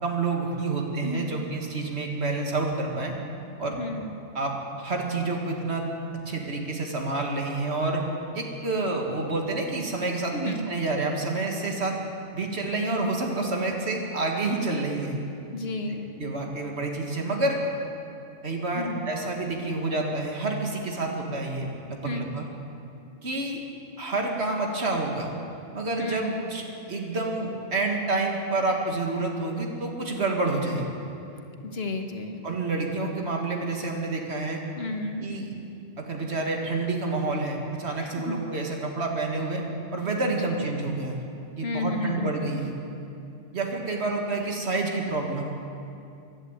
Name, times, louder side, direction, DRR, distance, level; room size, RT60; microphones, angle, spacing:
voice 1, 0.0-3.1 3.6-3.8 4.3-5.9 6.3-8.0 8.3-11.9 12.3-15.2 16.2-17.6 18.4-22.5 23.2-23.6 24.0-25.3 25.7-26.6 26.9-30.8 32.4-34.6 35.2-35.5 36.0-39.6 39.9-41.2 41.6-42.7 43.5-45.5, right 3 dB, 60° right, 1 dB, 2.1 m, -28 dB
voice 2, 1.0-1.4 3.8-4.1 10.3-10.6 15.5-16.1 18.7-19.0 22.0-22.3 26.0-26.4 31.6-32.4 34.7-35.3 38.0-38.4 40.3-40.6 41.6-42.3, left 2 dB, 60° left, 5 dB, 1.3 m, -32 dB
16.0 x 11.0 x 8.1 m, 2.7 s
omnidirectional pair, 1.2 m